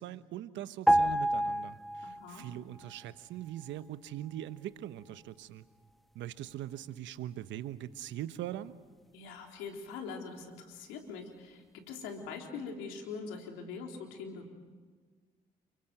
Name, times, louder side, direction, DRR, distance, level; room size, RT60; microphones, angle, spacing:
voice 1, 0.0-5.6 6.1-8.7, right 12 dB, 75° right, 13 dB, 1.1 m, -41 dB
sound 1, 0.9-2.5 2.8-3.0, equal, ahead, 1.7 m, -28 dB
voice 2, 2.0-2.5 9.1-14.5, left 5 dB, 85° left, 2 dB, 3.7 m, -43 dB
30.0 x 23.0 x 7.9 m, 1.4 s
hypercardioid pair, 45°, 19 cm